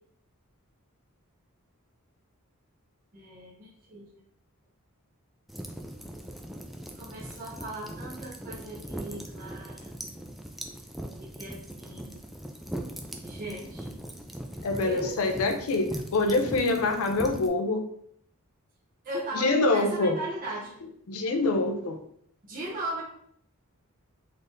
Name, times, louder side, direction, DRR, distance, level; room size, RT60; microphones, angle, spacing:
voice 1, 3.1-4.1 6.9-9.9 11.0-11.1 11.4-12.2 13.2-13.9 14.7-15.2 19.0-20.8 22.4-23.0, right 1 dB, 40° right, -6 dB, 0.8 m, -38 dB
sound 1, 5.5-17.5, right 1 dB, ahead, 0.3 m, -40 dB
voice 2, 14.6-17.8 19.3-20.2 21.1-22.0, left 2 dB, 70° left, 6 dB, 0.5 m, -25 dB
4.0 x 3.3 x 2.6 m, 0.67 s
head